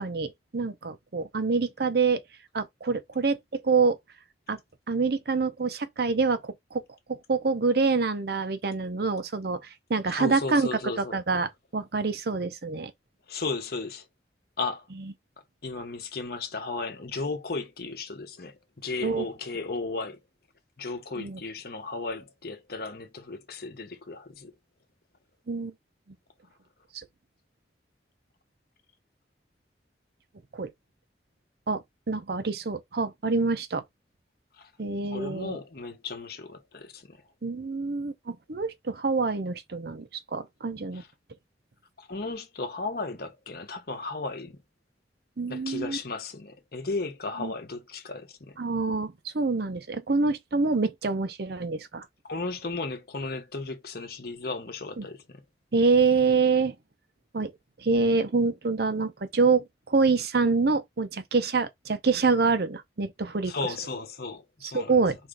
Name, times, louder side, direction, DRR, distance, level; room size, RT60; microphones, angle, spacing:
voice 1, 0.0-2.2 2.5-4.0 4.5-4.6 4.9-6.8 7.1-12.9 19.0-19.3 21.2-21.4 25.5-25.7 30.5-30.7 31.7-33.8 34.8-35.6 37.4-41.0 45.4-46.0 47.4-47.5 48.6-52.1 55.0-55.1 55.7-56.7 57.3-57.5 57.8-63.5 64.6-65.2, right 4 dB, 60° right, 0.7 m, -26 dB
voice 2, 10.1-11.2 13.3-14.1 14.6-14.9 15.6-20.2 20.8-24.5 34.6-34.7 35.1-37.2 40.9-41.1 42.0-44.6 45.5-48.6 52.3-55.4 63.5-64.9, left 3 dB, 55° left, 1.1 m, -35 dB
4.3 x 3.1 x 3.8 m
head